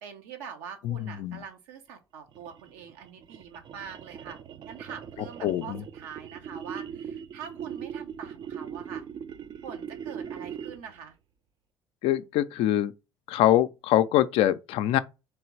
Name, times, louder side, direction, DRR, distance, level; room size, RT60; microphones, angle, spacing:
voice 1, 0.0-4.4 4.6-9.0 9.6-11.2, right 7 dB, 80° right, 0.9 m, -44 dB
voice 2, 0.8-1.4 5.4-5.8 12.0-12.9 13.3-15.0, left 13 dB, 65° left, 0.4 m, -24 dB
sound 1, 2.3-11.0, right 8 dB, 45° right, 0.4 m, -40 dB
3.3 x 3.1 x 4.5 m
hypercardioid pair, 65°, 10 cm